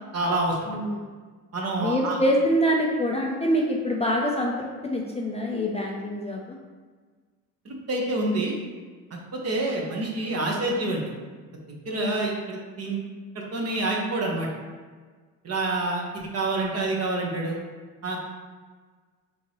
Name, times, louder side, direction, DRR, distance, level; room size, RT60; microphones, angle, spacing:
voice 1, 0.1-0.8 1.5-2.2 7.6-8.5 9.3-11.0 11.8-13.0 13.3-14.5 15.4-17.6 18.0-18.2, right 2 dB, 40° right, -1 dB, 1.1 m, -27 dB
voice 2, 0.7-1.1 1.8-6.6 11.9-12.2, equal, 15° left, -2 dB, 0.5 m, -25 dB
5.1 x 2.9 x 3.0 m, 1.5 s
supercardioid pair, 85°, 39 cm